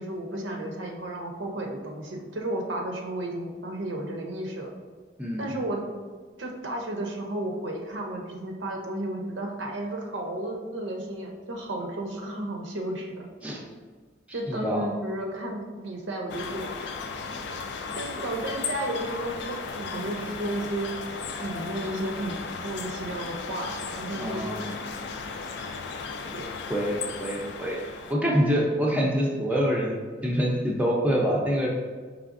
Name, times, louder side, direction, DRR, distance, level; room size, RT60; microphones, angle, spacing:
voice 1, 0.0-4.7 5.4-5.8 6.4-13.5 14.3-16.9 18.0-20.9 21.4-22.4 22.6-24.4 26.3-26.5, right 1 dB, 80° right, 1 dB, 0.6 m, -33 dB
voice 2, 5.2-5.5 13.4-13.6 14.5-14.9 24.2-24.9 26.7-27.8 28.1-31.7, equal, 5° right, -3 dB, 0.5 m, -26 dB
sound 1, 16.3-28.1, left 5 dB, 65° left, 0.3 m, -36 dB
4.9 x 3.2 x 2.5 m, 1.5 s
head